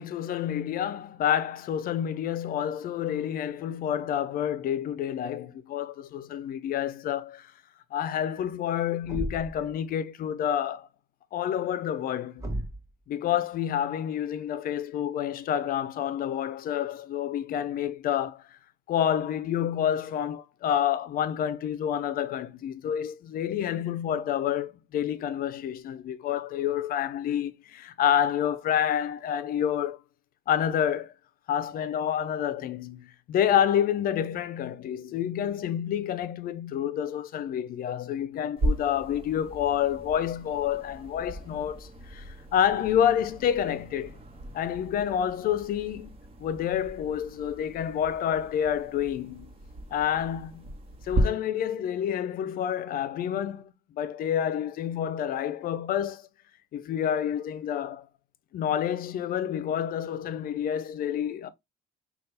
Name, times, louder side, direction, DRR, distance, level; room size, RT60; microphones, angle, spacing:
voice 1, 0.0-7.5 7.9-10.9 11.3-12.4 13.1-18.4 18.9-30.0 30.5-31.1 31.5-44.1 44.5-46.1 46.4-49.5 49.9-50.7 51.0-56.3 56.7-58.1 58.5-61.5, left 9 dB, 60° left, 0.5 m, -28 dB
Thump thud, 9.0-9.7 12.4-12.9, right 1 dB, 20° right, 1.3 m, -34 dB
sound 1, 38.6-51.2, right 1 dB, 35° right, 1.2 m, -37 dB
5.7 x 2.4 x 3.3 m
cardioid pair, 110°, 17 cm